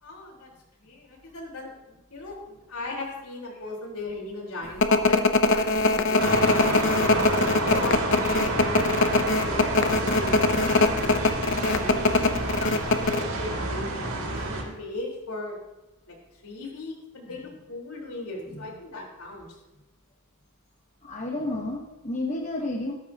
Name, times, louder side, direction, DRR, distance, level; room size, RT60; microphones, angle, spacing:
voice 1, 0.0-0.5 0.8-6.7 7.3-9.8 10.1-11.1 11.5-11.6 11.8-12.1 12.4-15.6 16.1-16.2 16.4-19.5, left 2 dB, 80° left, -1 dB, 4.1 m, -37 dB
sound 1, 4.8-13.2, left 3 dB, 55° left, 0.9 m, -22 dB
sound 2, 6.2-14.6, right 2 dB, 70° right, 2.9 m, -29 dB
voice 2, 21.0-22.9, left 2 dB, 30° left, 1 dB, 1.1 m, -31 dB
17.0 x 13.5 x 2.9 m, 1.0 s
head